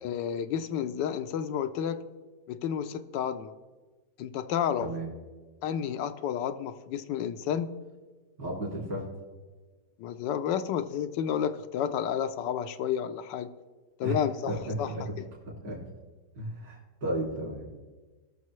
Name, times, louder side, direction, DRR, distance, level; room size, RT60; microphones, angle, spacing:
voice 1, 0.0-2.0 2.5-3.5 4.2-4.9 5.6-7.7 10.0-13.5 14.0-14.9, left 8 dB, 85° left, 10 dB, 1.3 m, -31 dB
voice 2, 8.4-9.1 14.0-14.2 14.5-15.0 15.6-15.8 16.3-17.7, right 1 dB, 70° right, -2 dB, 3.3 m, -33 dB
19.5 x 6.6 x 3.1 m, 1.3 s
omnidirectional pair, 1.9 m